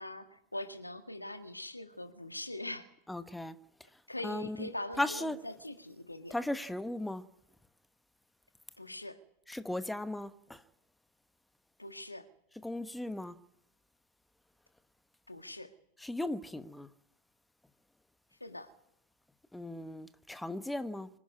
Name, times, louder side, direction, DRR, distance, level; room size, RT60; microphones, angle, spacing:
voice 1, 0.0-2.9 4.1-6.4 8.8-9.2 11.8-12.3 15.3-15.7 18.4-18.7, left 1 dB, 85° left, 1.8 m, -42 dB
voice 2, 3.1-3.6 4.2-4.7 5.0-5.4 6.3-7.2 9.5-10.6 12.6-13.4 16.0-16.9 19.5-21.1, left 1 dB, 5° left, 1.1 m, -36 dB
25.0 x 11.5 x 9.6 m
figure-of-eight pair, 90°, 0 cm